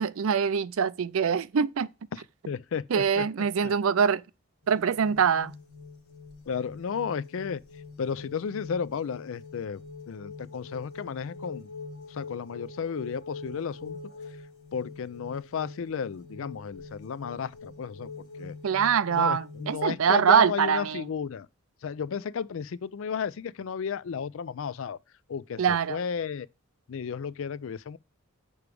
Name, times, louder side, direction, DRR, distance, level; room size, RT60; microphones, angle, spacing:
voice 1, 0.0-1.9 2.9-4.2 4.7-5.5 18.6-21.1 25.6-26.0, right 7 dB, 70° right, 0.4 m, -24 dB
voice 2, 2.1-3.7 6.5-7.6 8.0-9.8 10.1-11.7 12.1-14.0 14.7-18.6 19.2-21.5 21.8-25.0 25.3-26.5 26.9-28.0, left 6 dB, 65° left, 0.4 m, -33 dB
sound 1, 4.6-19.9, left 4 dB, 80° left, 2.3 m, -44 dB
6.9 x 4.7 x 4.8 m
head